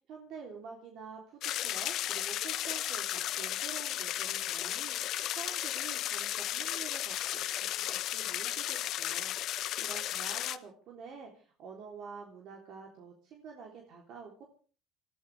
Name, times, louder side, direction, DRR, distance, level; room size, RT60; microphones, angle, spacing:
voice 1, 0.1-14.4, right 5 dB, 60° right, 1 dB, 3.4 m, -48 dB
sound 1, 1.4-10.6, left 13 dB, 55° left, 0.9 m, -34 dB
28.0 x 14.0 x 3.4 m, 0.40 s
cardioid pair, 135°, 0 cm